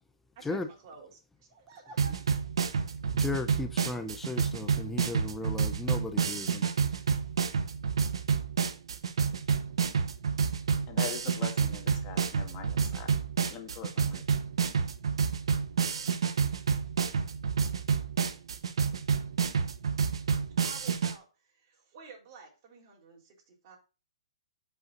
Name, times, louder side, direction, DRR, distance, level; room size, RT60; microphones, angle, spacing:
voice 1, 0.4-2.2 20.6-23.8, right 4 dB, 40° right, 4.1 m, -51 dB
sound 1, 2.0-21.1, right 6 dB, 75° right, 1.1 m, -29 dB
voice 2, 3.1-6.7, left 3 dB, 5° left, 0.7 m, -36 dB
voice 3, 10.9-13.1 13.5-14.2, left 7 dB, 30° left, 2.1 m, -42 dB
10.5 x 5.7 x 2.6 m
hypercardioid pair, 135°, 3 cm